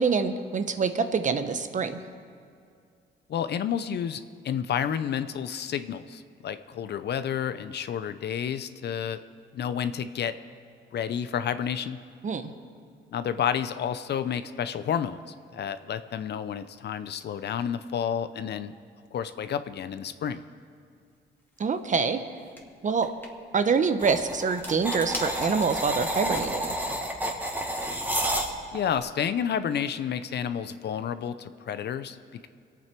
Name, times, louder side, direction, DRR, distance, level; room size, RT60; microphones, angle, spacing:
voice 1, 0.0-2.0 12.2-12.5 21.6-22.2 22.8-23.1 23.5-26.7, right 5 dB, 40° right, 9 dB, 1.0 m, -25 dB
voice 2, 3.3-9.2 9.5-10.3 10.9-12.0 13.1-18.7 19.1-20.4 28.7-32.2, left 8 dB, 60° left, 12 dB, 0.6 m, -30 dB
sound 1, 21.6-21.8 22.6-22.7 23.0-23.3 24.4-26.6 27.1-28.6, left 1 dB, 10° left, 2.2 m, -42 dB
sound 2, 24.0-28.8, right 1 dB, 10° right, 1.9 m, -30 dB
23.0 x 8.9 x 4.5 m, 2.4 s
cardioid pair, 90°, 20 cm